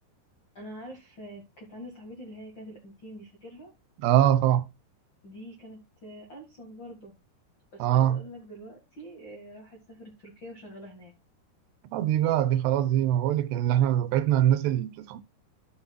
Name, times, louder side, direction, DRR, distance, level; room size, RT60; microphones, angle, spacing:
voice 1, 0.5-3.7 5.2-7.1 7.7-11.1, equal, 50° left, 1.3 m, -45 dB
voice 2, 4.0-4.7 7.8-8.2 11.9-15.2, right 11 dB, 80° right, 2.8 m, -23 dB
13.0 x 5.7 x 2.3 m
omnidirectional pair, 4.9 m